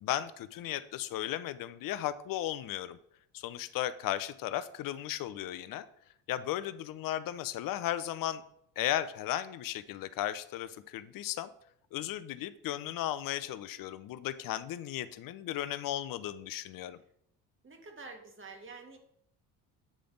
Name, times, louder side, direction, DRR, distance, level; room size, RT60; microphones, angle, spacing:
voice 1, 0.0-3.0 3.3-5.9 6.3-8.4 8.8-11.5 11.9-17.0, left 13 dB, 45° left, 14 dB, 0.5 m, -35 dB
voice 2, 17.6-19.0, right 4 dB, 25° right, 3 dB, 1.5 m, -48 dB
8.6 x 3.4 x 3.8 m, 0.71 s
supercardioid pair, 80°, 46 cm